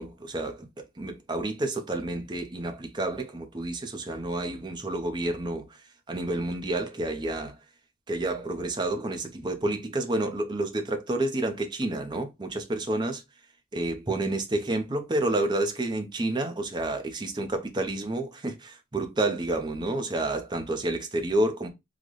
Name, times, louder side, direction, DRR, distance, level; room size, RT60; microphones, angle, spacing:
voice 1, 0.0-7.6 8.1-13.2 13.7-21.7, right 2 dB, 25° right, 0.5 m, -29 dB
3.8 x 2.1 x 3.1 m
head